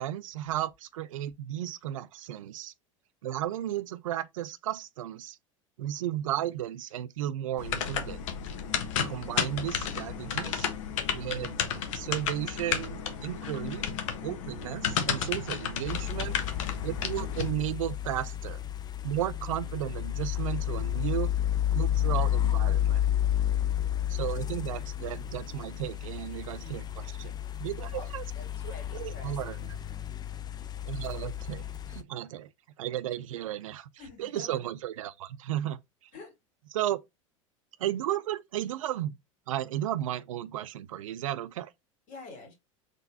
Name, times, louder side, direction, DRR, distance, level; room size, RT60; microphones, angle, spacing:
voice 1, 0.0-2.7 3.2-5.4 5.8-8.2 9.0-10.7 11.1-13.9 14.2-16.4 16.8-18.6 19.0-21.3 21.7-23.0 24.1-27.3 27.6-28.2 28.6-29.7 30.9-32.5 32.8-33.9 34.2-35.8 36.7-37.0 37.8-39.2 39.5-41.7, right 12 dB, 80° right, 0.4 m, -34 dB
sound 1, 7.6-17.5, left 7 dB, 70° left, 0.9 m, -32 dB
sound 2, 15.9-32.0, left 11 dB, 25° left, 0.4 m, -31 dB
voice 2, 26.5-26.9 27.9-29.8 34.0-34.7 36.1-36.3 42.1-42.5, left 3 dB, 50° left, 2.5 m, -48 dB
3.8 x 3.3 x 2.7 m
hypercardioid pair, 85°, 17 cm